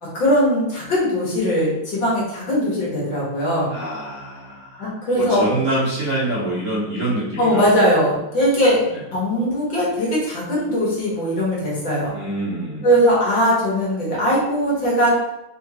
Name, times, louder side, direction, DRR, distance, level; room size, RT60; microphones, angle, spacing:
voice 1, 0.0-3.7 4.8-5.6 7.4-8.8 9.1-12.1 12.8-15.1, equal, 60° left, -5 dB, 2.0 m, -20 dB
voice 2, 3.7-7.7 8.9-9.0 12.1-12.9, right 1 dB, 45° right, -8 dB, 1.3 m, -26 dB
4.3 x 3.5 x 2.9 m, 0.87 s
omnidirectional pair, 2.4 m